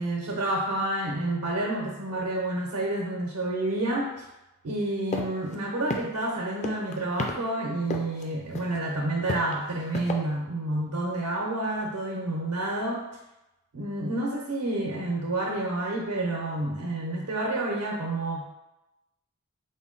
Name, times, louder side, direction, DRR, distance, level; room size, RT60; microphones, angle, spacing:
voice 1, 0.0-4.1 4.6-13.1 13.7-18.4, right 2 dB, 80° right, -2 dB, 0.6 m, -29 dB
sound 1, 5.1-5.2 5.5-5.6 5.9-6.3 6.6-7.3 7.9-8.2 8.5-8.8 9.3-10.1, left 3 dB, 30° left, 0.4 m, -30 dB
3.9 x 2.1 x 3.7 m, 0.97 s
head